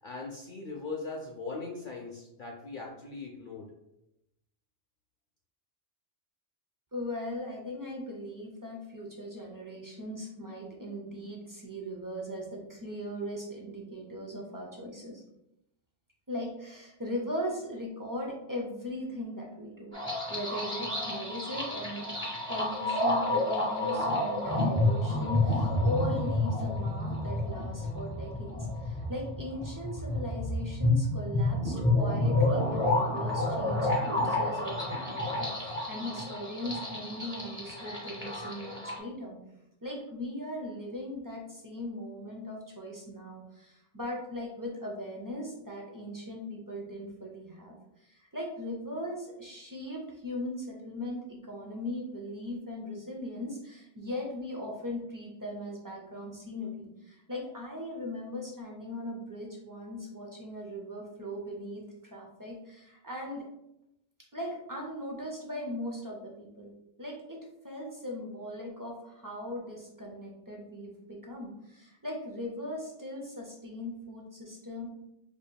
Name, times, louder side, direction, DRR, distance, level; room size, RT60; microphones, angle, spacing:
voice 1, 0.0-3.7, left 3 dB, 60° left, 0 dB, 0.6 m, -40 dB
voice 2, 6.9-15.2 16.3-22.2 22.5-39.4 39.8-61.8 62.1-63.4 64.3-66.7 67.0-67.4 67.6-74.9, left 1 dB, 35° right, -1 dB, 0.3 m, -39 dB
sound 1, 19.9-39.0, left 1 dB, 10° right, 0.9 m, -30 dB
4.9 x 2.6 x 2.2 m, 0.85 s
omnidirectional pair, 1.2 m